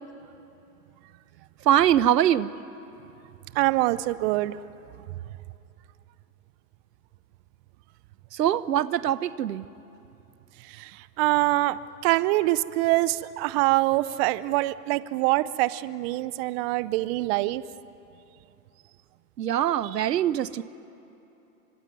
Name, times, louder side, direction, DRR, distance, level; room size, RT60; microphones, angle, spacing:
voice 1, 1.7-2.5 8.4-9.6 19.4-20.6, right 11 dB, 90° right, 16 dB, 1.0 m, -23 dB
voice 2, 3.5-4.6 10.8-10.9 11.2-11.8 12.0-17.6, right 19 dB, 40° right, 17 dB, 0.7 m, -24 dB
25.0 x 23.0 x 9.4 m, 3.0 s
hypercardioid pair, 125°, 47 cm